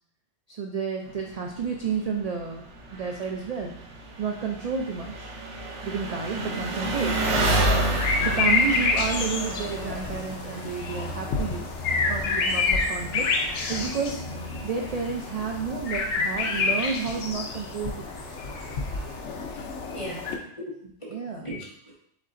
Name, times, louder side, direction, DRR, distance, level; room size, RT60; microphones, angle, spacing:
voice 1, 0.5-2.6 2.9-3.7 4.2-5.3 5.8-7.1 8.2-18.4 21.1-21.5, right 5 dB, 60° right, 2 dB, 0.4 m, -31 dB
Engine, 1.1-19.2, right 2 dB, 85° right, 1.1 m, -33 dB
voice 2, 6.8-7.2 14.5-14.6 19.9-20.2 20.6-21.2 21.4-22.0, equal, 30° left, -5 dB, 1.3 m, -37 dB
sound 1, 7.3-20.4, left 4 dB, 80° left, 1.0 m, -28 dB
5.3 x 3.9 x 2.5 m, 0.67 s
omnidirectional pair, 1.2 m